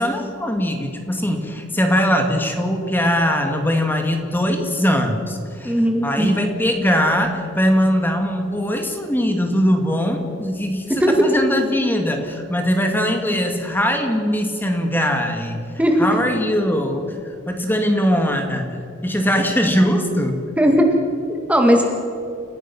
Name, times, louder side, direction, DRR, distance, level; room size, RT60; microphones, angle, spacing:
voice 1, 0.0-15.6 16.0-18.8 19.0-20.4, equal, 10° left, 4 dB, 2.3 m, -21 dB
voice 2, 5.6-6.4 11.0-11.1 15.8-16.1 20.6-20.9 21.3-21.8, equal, 5° right, 2 dB, 2.1 m, -17 dB
30.0 x 17.0 x 6.1 m, 2.5 s
head